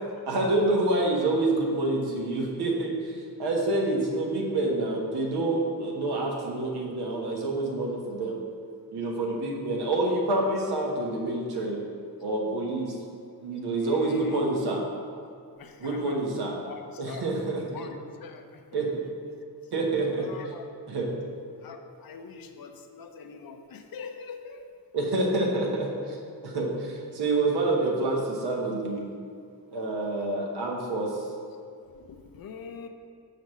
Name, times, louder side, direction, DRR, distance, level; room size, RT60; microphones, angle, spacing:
voice 1, 0.3-8.4 8.9-11.8 12.2-13.0 13.4-14.8 15.8-16.6 17.0-17.6 18.7-18.9 19.7-20.3 20.9-21.1 24.9-29.1 29.7-31.3, right 2 dB, 90° right, -1 dB, 1.3 m, -27 dB
voice 2, 13.8-14.5 15.6-16.3 16.6-17.3 17.7-18.4 18.7-18.9 20.2-20.7 21.6-24.6 32.0-32.9, left 5 dB, 65° left, 5 dB, 0.7 m, -44 dB
6.0 x 4.1 x 6.3 m, 2.2 s
cardioid pair, 105°, 38 cm